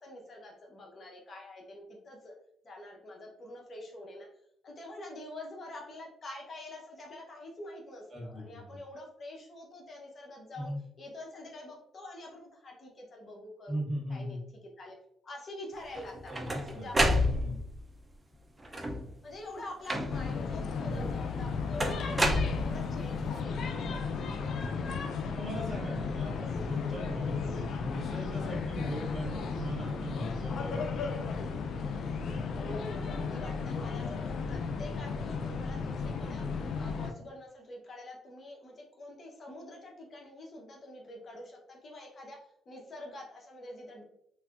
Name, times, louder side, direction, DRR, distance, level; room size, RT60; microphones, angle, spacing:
voice 1, 0.0-2.3 2.6-4.3 4.6-10.7 11.0-13.8 14.1-15.0 15.2-17.4 19.2-24.7 32.5-44.0, left 1 dB, 45° left, 0 dB, 0.8 m, -46 dB
voice 2, 8.1-8.7 10.6-10.8 13.7-14.4 16.3-16.9 17.1-17.6 20.8-21.6 24.6-24.9 25.3-31.4, equal, 40° right, -2 dB, 1.2 m, -39 dB
sound 1, 15.9-17.8 18.6-19.2 19.9-20.4 21.8-23.1, equal, 20° right, 0.5 m, -29 dB
sound 2, 20.1-37.1, left 5 dB, 65° left, 0.3 m, -34 dB
3.3 x 2.6 x 2.4 m, 0.75 s
cardioid pair, 90°, 0 cm